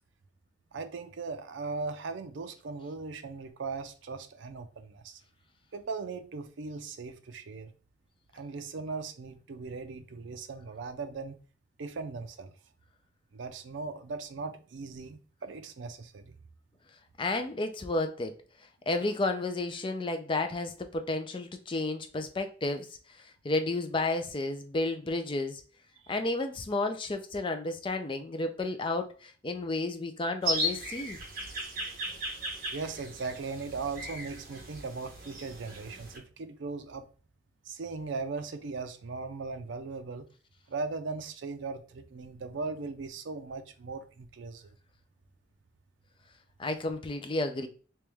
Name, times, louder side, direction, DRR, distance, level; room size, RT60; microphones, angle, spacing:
voice 1, 0.7-5.2 5.7-7.7 8.3-11.4 11.8-12.5 13.3-16.3 26.0-26.1 32.7-37.0 37.7-40.3 40.7-44.8, right 4 dB, 70° right, 0.5 m, -38 dB
voice 2, 17.2-18.3 18.9-22.9 23.2-25.6 26.1-31.2 46.6-47.7, left 2 dB, 25° left, 0.4 m, -32 dB
sound 1, 30.4-36.2, right 1 dB, 50° right, 1.3 m, -36 dB
3.3 x 3.0 x 3.4 m
head